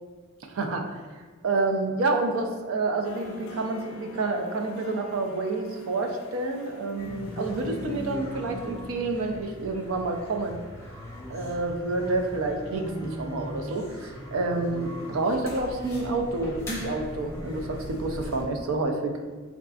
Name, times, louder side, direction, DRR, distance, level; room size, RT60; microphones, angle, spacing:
voice 1, 0.5-1.0 1.4-10.6 11.3-19.2, right 3 dB, 75° right, 4 dB, 0.4 m, -29 dB
sound 1, 3.0-8.2, left 2 dB, 70° left, 0.4 m, -46 dB
sound 2, 7.0-18.4, left 1 dB, 10° left, 0.5 m, -39 dB
3.5 x 2.4 x 2.3 m, 1.4 s
head